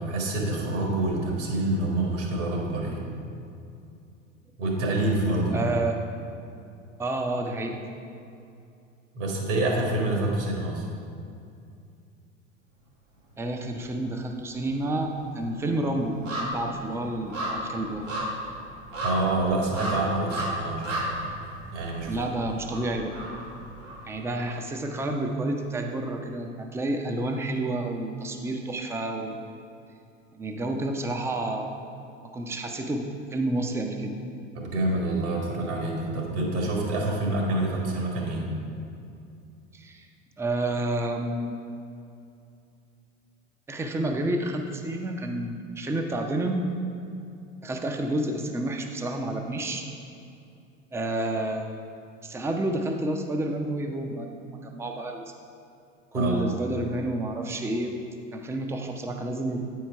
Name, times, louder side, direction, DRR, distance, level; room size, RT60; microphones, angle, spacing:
voice 1, 0.0-3.0 4.6-5.6 9.1-10.8 19.0-21.3 21.7-22.2 34.5-38.5 56.1-56.6, right 2 dB, 65° right, -1 dB, 1.8 m, -27 dB
voice 2, 5.5-6.0 7.0-7.8 13.4-18.1 22.0-23.1 24.1-29.4 30.3-31.8 32.3-34.1 39.7-40.1 40.4-41.5 43.7-46.6 47.6-49.8 50.9-51.7 52.2-54.3 54.6-55.2 56.1-58.0 58.3-59.6, right 1 dB, 5° right, 4 dB, 0.5 m, -29 dB
sound 1, 13.3-14.1 14.3-24.3 24.7-24.8, equal, 85° right, 1.5 m, -35 dB
8.6 x 4.7 x 4.5 m, 2.5 s
figure-of-eight pair, 75°, 37 cm